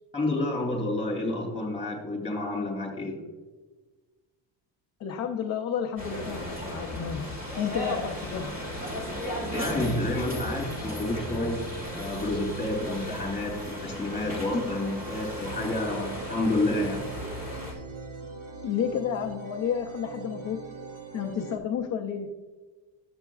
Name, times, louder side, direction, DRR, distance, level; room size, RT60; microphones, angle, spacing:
voice 1, 0.1-3.2 9.5-11.6 11.9-17.0, left 2 dB, 15° left, -1 dB, 2.7 m, -29 dB
voice 2, 5.0-7.3 7.6-8.6 18.6-20.7 21.1-22.4, left 8 dB, 35° left, 2 dB, 0.5 m, -31 dB
sound 1, 6.0-17.7, equal, 20° right, 1.9 m, -35 dB
sound 2, 15.4-21.6, right 3 dB, 45° right, 1.0 m, -41 dB
10.5 x 7.6 x 2.3 m, 1.3 s
cardioid pair, 180°, 46 cm